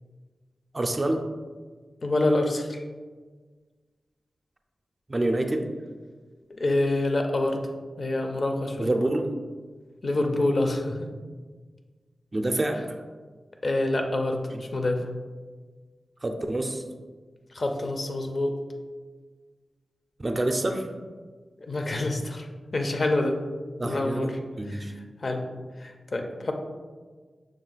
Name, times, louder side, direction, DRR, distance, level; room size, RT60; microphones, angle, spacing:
voice 1, 0.7-1.2 5.1-5.7 8.8-9.3 12.3-13.0 14.5-14.6 16.2-16.8 20.2-20.9 23.8-24.3 24.6-24.9, right 1 dB, 35° right, 5 dB, 0.4 m, -27 dB
voice 2, 2.0-2.8 6.5-7.6 8.0-8.9 10.0-11.1 13.6-14.4 14.7-15.0 17.5-18.6 21.6-22.5 22.7-23.4 23.8-24.3 24.7-24.9 25.2-25.4 25.8-26.5, left 2 dB, 55° left, 4 dB, 0.5 m, -26 dB
6.0 x 2.3 x 3.9 m, 1.4 s
wide cardioid pair, 70°, 0 cm